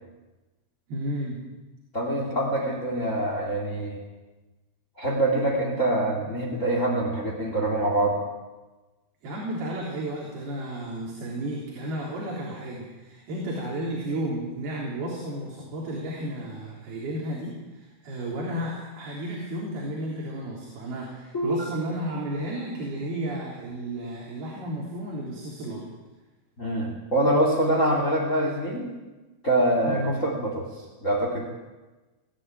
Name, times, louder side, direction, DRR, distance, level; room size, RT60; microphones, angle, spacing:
voice 1, 0.9-1.4 2.6-2.7 9.2-25.9 29.9-30.2, right 1 dB, 70° right, -3 dB, 5.6 m, -33 dB
voice 2, 1.9-4.0 5.0-8.2 21.3-21.7 26.6-28.9 29.4-30.6 31.0-31.5, right 1 dB, 20° left, 1 dB, 2.9 m, -25 dB
21.0 x 14.0 x 9.1 m, 1.2 s
omnidirectional pair, 4.7 m